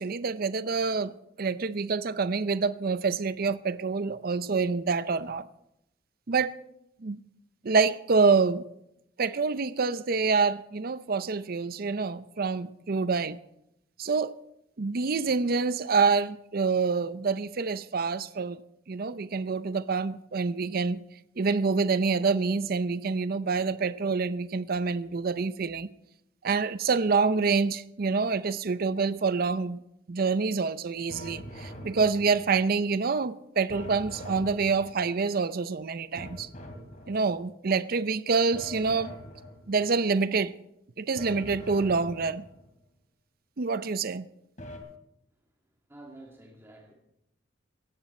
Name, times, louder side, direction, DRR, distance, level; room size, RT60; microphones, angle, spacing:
voice 1, 0.0-5.5 6.3-6.5 7.0-7.2 7.6-8.6 9.2-13.4 14.0-14.4 14.8-18.6 18.9-21.0 21.4-25.9 26.4-29.8 30.1-36.5 37.1-39.1 39.7-40.5 41.0-42.5 43.6-44.3, right 4 dB, 50° right, 0.5 m, -27 dB
sound 1, 31.1-32.7 33.7-35.2 36.2-37.5 38.5-39.9 41.2-42.7 44.6-44.8, equal, 40° left, 3.1 m, -43 dB
voice 2, 45.9-46.9, right 2 dB, 15° right, 2.2 m, -49 dB
18.0 x 15.0 x 4.3 m
head